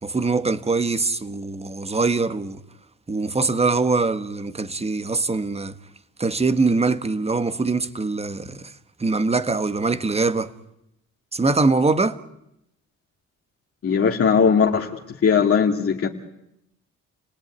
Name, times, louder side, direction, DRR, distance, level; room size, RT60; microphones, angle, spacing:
voice 1, 0.0-2.6 3.1-5.7 6.2-8.7 9.0-10.5 11.3-12.2, right 3 dB, 20° right, 1.5 m, -23 dB
voice 2, 13.8-14.9 15.2-16.1, left 6 dB, 50° left, 2.4 m, -18 dB
30.0 x 18.5 x 9.7 m
cardioid pair, 90°, 30 cm